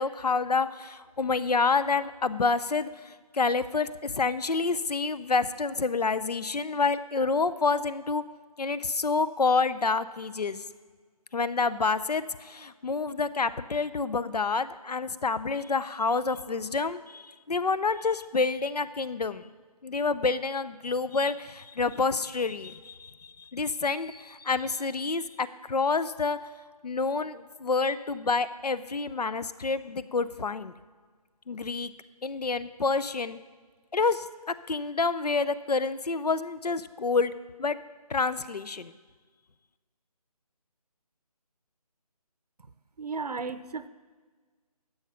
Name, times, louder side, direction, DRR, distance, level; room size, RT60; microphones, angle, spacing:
voice 1, 0.0-8.2 8.6-10.6 11.3-19.5 19.8-26.4 26.8-30.7 31.5-31.9 32.2-33.4 33.9-37.3 37.6-37.8 38.1-38.9, left 4 dB, 85° left, 15 dB, 0.7 m, -28 dB
voice 2, 43.0-43.9, right 4 dB, 75° right, 14 dB, 0.7 m, -34 dB
13.0 x 8.0 x 5.6 m, 1.5 s
figure-of-eight pair, 160°, 20 cm